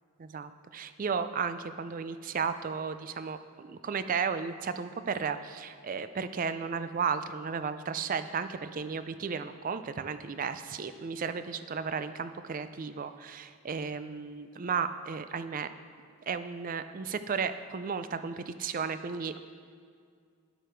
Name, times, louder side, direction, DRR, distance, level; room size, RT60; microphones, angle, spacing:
voice 1, 0.2-15.7 16.3-19.4, right 6 dB, 40° right, 11 dB, 0.4 m, -34 dB
10.0 x 8.0 x 4.5 m, 2.2 s
head